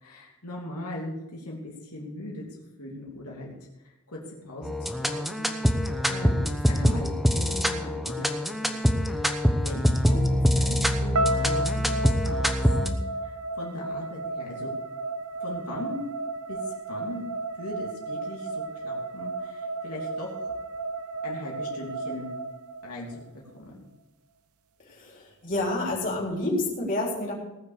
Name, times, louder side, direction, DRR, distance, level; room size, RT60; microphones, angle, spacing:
voice 1, 0.0-2.4 2.8-3.5 3.8-4.2 4.4-4.7 5.0-8.7 9.5-13.0 13.2-14.7 15.4-16.0 16.5-17.3 17.6-20.5 21.2-22.3 22.8-23.2 23.6-23.9, left 1 dB, 85° left, -3 dB, 3.0 m, -39 dB
sound 1, 4.6-12.9, equal, ahead, 0.9 m, -24 dB
sound 2, 11.1-23.3, right 2 dB, 75° right, 0.9 m, -33 dB
voice 2, 24.9-27.3, left 2 dB, 40° left, -3 dB, 3.9 m, -29 dB
19.0 x 6.4 x 6.8 m, 0.97 s
head